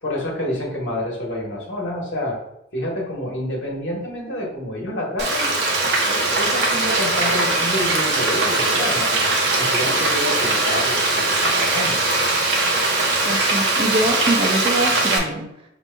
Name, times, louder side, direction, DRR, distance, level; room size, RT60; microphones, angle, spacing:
voice 1, 0.0-2.4 2.7-5.5 6.0-12.1, left 1 dB, 75° left, -2 dB, 1.2 m, -28 dB
Frying (food), 5.2-15.2, right 2 dB, 60° right, 0.7 m, -20 dB
voice 2, 13.3-15.5, right 1 dB, 30° right, 1 dB, 0.4 m, -23 dB
5.2 x 2.9 x 2.2 m, 0.82 s
head